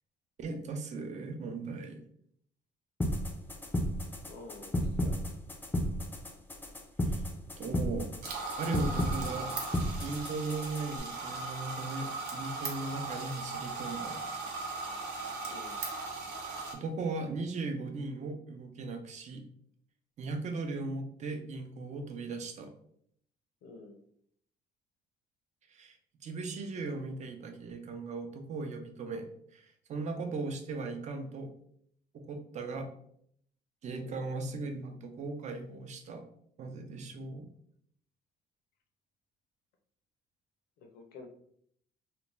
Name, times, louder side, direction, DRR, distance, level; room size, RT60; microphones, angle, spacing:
voice 1, 0.4-2.0 7.0-7.3 7.6-8.1 8.6-9.5 10.0-14.2 16.7-19.4 20.2-22.7 25.7-26.0 26.2-29.2 29.5-31.5 32.1-32.9 33.8-36.2 36.6-37.5, right 3 dB, 45° right, 5 dB, 0.5 m, -38 dB
sound 1, 3.0-11.0, equal, 10° left, 0.4 m, -33 dB
voice 2, 4.3-5.3 15.5-15.8 23.6-24.0 34.0-34.2 40.8-41.3, left 3 dB, 75° left, 5 dB, 0.6 m, -49 dB
sound 2, 8.2-16.7, right 3 dB, 80° right, 0.7 m, -38 dB
2.5 x 2.2 x 3.0 m, 0.67 s
cardioid pair, 110°, 17 cm